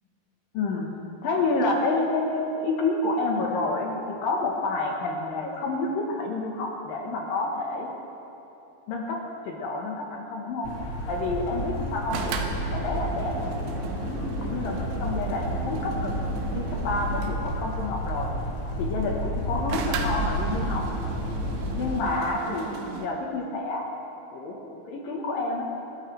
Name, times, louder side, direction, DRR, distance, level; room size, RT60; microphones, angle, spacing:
voice 1, 0.5-0.9 1.2-7.9 8.9-9.2 9.5-10.7 11.1-12.4 12.7-16.3 16.5-18.3 18.8-20.9 21.7-23.9 24.3-25.7, left 3 dB, 65° left, 0 dB, 2.8 m, -29 dB
sound 1, 10.6-22.0, equal, 45° left, 2.2 m, -31 dB
sound 2, 12.1-17.5 19.7-23.1, right 5 dB, 85° right, 3.2 m, -35 dB
26.5 x 13.0 x 3.4 m, 2.9 s
omnidirectional pair, 4.8 m